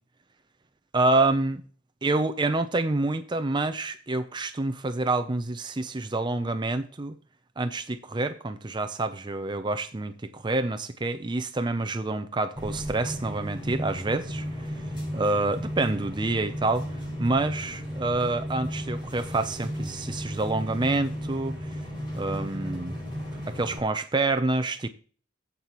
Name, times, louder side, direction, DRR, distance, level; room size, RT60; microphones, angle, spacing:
voice 1, 0.9-1.6 2.0-7.2 7.6-10.1 10.4-14.7 15.1-16.9 17.2-21.8 22.1-23.0 23.5-24.9, right 2 dB, 20° right, 0.5 m, -27 dB
sound 1, 12.6-23.8, equal, 25° left, 4.4 m, -35 dB
13.0 x 8.3 x 3.0 m
head